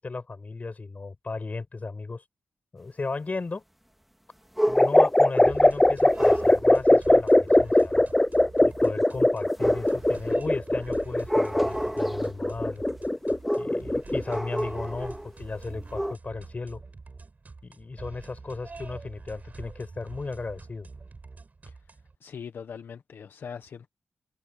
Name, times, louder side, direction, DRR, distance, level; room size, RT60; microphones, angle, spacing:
voice 1, 0.0-2.2 2.7-3.6 4.7-8.0 8.6-12.8 13.6-16.8 17.6-20.9, left 3 dB, 40° left, 6.8 m, -35 dB
sound 1, 4.6-5.1 6.1-6.6 9.5-10.3 11.2-12.4 13.4-13.9 14.2-15.4 15.7-16.2, equal, 5° right, 1.9 m, -30 dB
sound 2, 4.8-14.4, left 1 dB, 10° left, 0.4 m, -21 dB
sound 3, 5.4-22.1, right 3 dB, 45° right, 6.9 m, -45 dB
voice 2, 21.7-23.9, left 7 dB, 70° left, 1.1 m, -42 dB
cardioid pair, 55°, 4 cm